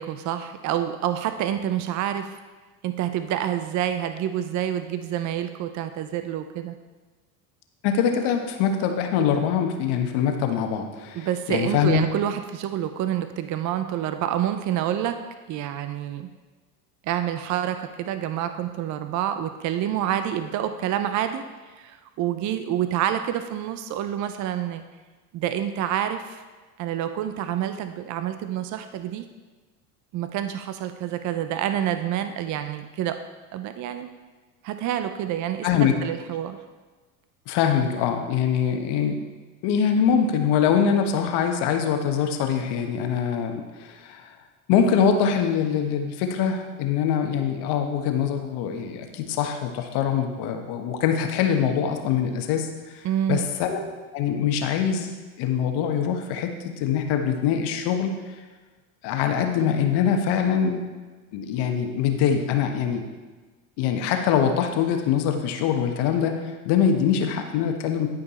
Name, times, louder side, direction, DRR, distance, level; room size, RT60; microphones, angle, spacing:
voice 1, 0.0-2.4 2.8-6.7 11.1-16.3 17.0-21.4 21.8-24.8 25.3-26.4 26.8-29.3 30.1-33.2 33.5-34.1 34.6-36.6 53.0-53.4, right 10 dB, 40° right, 9 dB, 0.6 m, -28 dB
voice 2, 7.8-12.0 35.6-35.9 37.5-39.2 39.6-44.4 44.7-53.8 54.1-58.2 59.0-60.8 61.3-63.1 63.8-68.1, left 7 dB, 60° left, 5 dB, 1.2 m, -23 dB
11.5 x 5.2 x 4.2 m, 1.3 s
hypercardioid pair, 85°, 46 cm